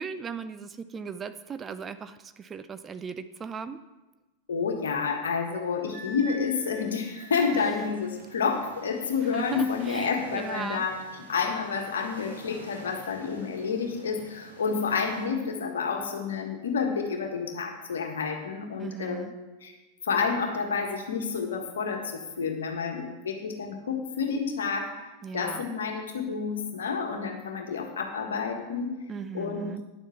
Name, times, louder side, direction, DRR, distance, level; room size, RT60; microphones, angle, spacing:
voice 1, 0.0-3.8 7.5-7.6 9.3-10.9 18.8-19.3 25.2-25.7 29.1-29.8, right 6 dB, 20° right, 11 dB, 0.4 m, -37 dB
voice 2, 4.5-19.7 20.0-24.9 25.3-28.9 29.3-29.7, left 5 dB, 65° left, 3 dB, 1.5 m, -29 dB
Wind instrument woodwind instrument, 5.9-7.9, right 1 dB, 50° right, 3.1 m, -44 dB
sound 1, 7.5-15.3, equal, 85° right, 1.9 m, -49 dB
10.5 x 7.3 x 5.7 m, 1.1 s
figure-of-eight pair, 90°, 0 cm